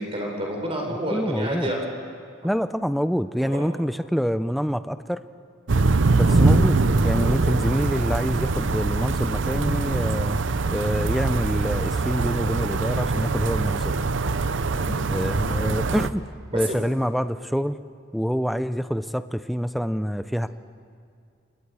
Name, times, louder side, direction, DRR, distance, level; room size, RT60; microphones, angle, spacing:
voice 1, 0.0-1.8 2.4-2.5 3.4-3.7 6.2-6.4 14.7-15.0 16.5-16.8, right 1 dB, 30° right, 1 dB, 4.0 m, -30 dB
voice 2, 1.1-1.7 2.4-5.2 6.1-6.8 7.0-10.4 10.7-14.0 15.1-16.2 16.5-17.8 18.1-20.5, equal, ahead, 12 dB, 0.4 m, -26 dB
sound 1, 5.7-16.1, right 3 dB, 75° right, 0.7 m, -23 dB
27.0 x 20.5 x 4.9 m, 2.3 s
head